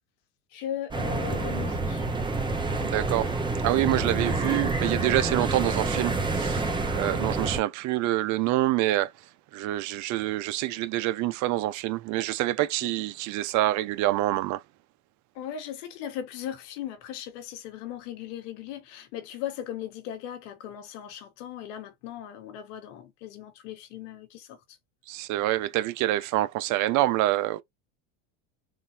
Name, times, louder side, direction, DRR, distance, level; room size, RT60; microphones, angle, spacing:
voice 1, 0.5-2.0 4.2-4.4 12.8-12.9 15.3-24.6, left 10 dB, 75° left, 1.4 m, -38 dB
sound 1, 0.9-7.6, right 3 dB, 10° right, 1.1 m, -28 dB
voice 2, 2.8-3.3 3.6-6.6 6.9-9.1 9.5-14.6 25.1-27.6, right 15 dB, 50° right, 0.6 m, -26 dB
3.8 x 2.5 x 2.8 m
supercardioid pair, 115°, 37 cm